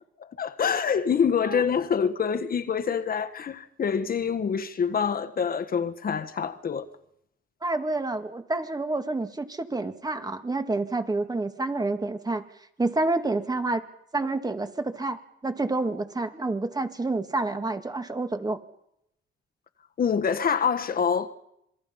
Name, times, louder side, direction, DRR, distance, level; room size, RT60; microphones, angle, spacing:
voice 1, 0.2-6.9 20.0-21.3, left 7 dB, 45° left, 1.5 m, -26 dB
voice 2, 7.6-12.4 12.8-13.8 14.1-18.6, right 2 dB, 20° right, 2.1 m, -28 dB
27.0 x 22.5 x 5.7 m
cardioid pair, 90°, 20 cm